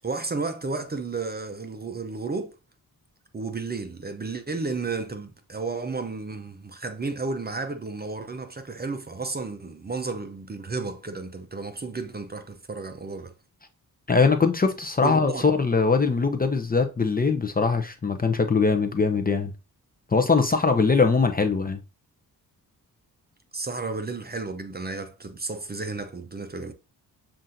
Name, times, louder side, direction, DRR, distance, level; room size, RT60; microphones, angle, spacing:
voice 1, 0.0-2.6 3.3-13.3 15.0-15.4 23.5-26.7, right 3 dB, 25° right, 0.6 m, -32 dB
voice 2, 14.1-19.5 20.1-21.8, left 4 dB, 25° left, 0.6 m, -22 dB
7.2 x 2.6 x 2.6 m
cardioid pair, 75°, 38 cm